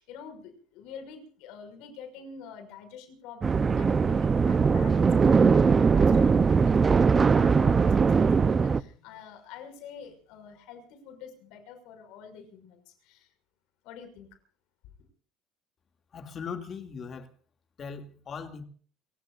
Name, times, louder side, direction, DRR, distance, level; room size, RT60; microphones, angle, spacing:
voice 1, 0.0-13.3 13.8-14.3, left 6 dB, 75° left, 5.8 m, -46 dB
sound 1, 3.4-8.8, right 5 dB, 25° right, 0.7 m, -21 dB
voice 2, 16.1-17.3 17.8-18.7, left 6 dB, 35° left, 2.4 m, -39 dB
30.0 x 17.0 x 2.5 m
cardioid pair, 130°, 0 cm